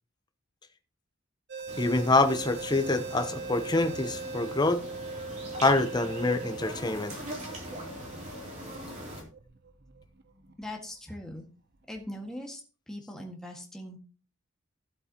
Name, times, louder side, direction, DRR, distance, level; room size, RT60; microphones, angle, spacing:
sound 1, 1.5-10.7 11.3-11.4 11.9-12.1, right 3 dB, 55° right, 0.9 m, -41 dB
sound 2, 1.7-9.2, right 1 dB, 35° right, 3.2 m, -41 dB
voice 1, 1.8-4.8 5.6-7.2, left 2 dB, 20° left, 0.9 m, -26 dB
voice 2, 10.6-11.4 11.9-12.6 12.9-14.0, left 1 dB, 5° left, 1.8 m, -40 dB
15.0 x 7.9 x 3.0 m
head